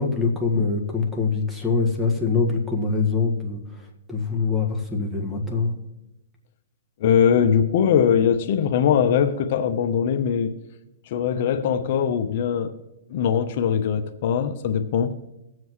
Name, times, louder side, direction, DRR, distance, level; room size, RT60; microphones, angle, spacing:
voice 1, 0.0-3.6 4.1-5.7, left 4 dB, 5° right, 2 dB, 1.7 m, -24 dB
voice 2, 7.0-10.5 11.1-12.7 13.1-15.1, left 8 dB, 55° left, 8 dB, 0.8 m, -21 dB
21.5 x 7.7 x 3.1 m, 0.93 s
hypercardioid pair, 140°, 0 cm